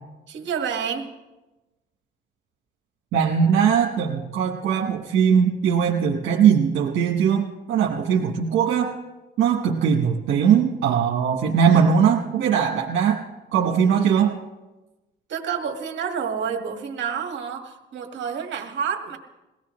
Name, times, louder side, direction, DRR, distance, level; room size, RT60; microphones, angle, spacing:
voice 1, 0.3-1.1 15.3-19.2, right 7 dB, 65° right, 4 dB, 1.9 m, -29 dB
voice 2, 3.1-8.9 9.4-13.2 13.5-14.4, right 7 dB, 80° right, -1 dB, 1.4 m, -20 dB
22.0 x 17.0 x 3.2 m, 1.1 s
cardioid pair, 90°, 20 cm